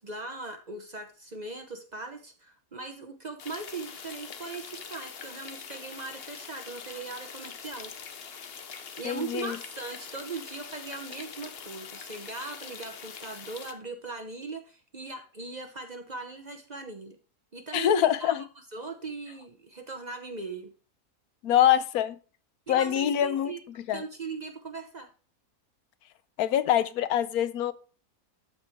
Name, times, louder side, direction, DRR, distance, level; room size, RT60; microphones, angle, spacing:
voice 1, 0.0-7.9 9.0-17.2 17.5-18.3 18.7-20.7 22.7-23.6 23.9-25.1, right 3 dB, 35° right, 0.8 m, -39 dB
sound 1, 3.4-13.7, left 6 dB, 50° left, 0.9 m, -43 dB
voice 2, 9.0-9.6 17.7-18.4 21.4-22.2 22.7-23.5 23.9-24.0 26.4-27.7, left 11 dB, 80° left, 1.1 m, -24 dB
12.5 x 4.7 x 3.5 m
omnidirectional pair, 1.6 m